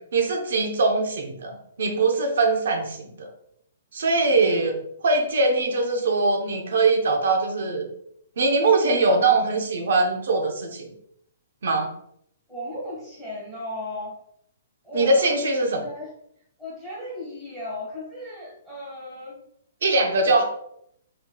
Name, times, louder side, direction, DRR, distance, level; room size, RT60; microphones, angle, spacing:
voice 1, 0.1-3.3 3.9-4.8 5.0-7.9 8.4-10.9 11.6-11.9 14.9-15.8 19.8-20.4, right 3 dB, 65° right, 4 dB, 0.9 m, -22 dB
voice 2, 12.5-14.1 14.8-15.4 15.8-16.1 16.6-19.4 20.2-20.4, left 1 dB, 5° right, -9 dB, 1.5 m, -35 dB
4.5 x 4.0 x 2.3 m, 0.72 s
hypercardioid pair, 175°, 0 cm